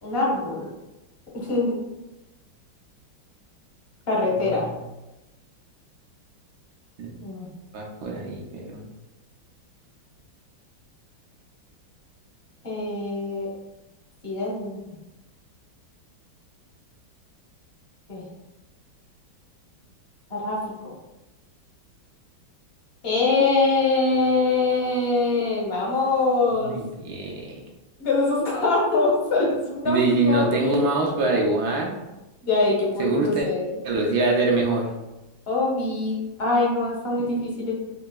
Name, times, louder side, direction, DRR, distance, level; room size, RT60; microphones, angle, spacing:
voice 1, 0.0-0.7 1.3-1.7 4.1-4.6 7.2-7.5 12.6-13.5 14.2-14.8 18.1-18.2 20.3-20.6 20.8-20.9 23.0-26.8 28.0-30.8 32.4-33.6 35.5-37.7, left 3 dB, 45° left, -3 dB, 0.8 m, -23 dB
voice 2, 4.3-4.7 7.0-7.1 7.7-8.9 26.5-27.6 29.8-32.0 33.0-33.5 33.8-34.9 37.2-37.3, right 2 dB, 70° right, -1 dB, 1.0 m, -24 dB
5.2 x 2.8 x 2.2 m, 1.0 s
omnidirectional pair, 2.2 m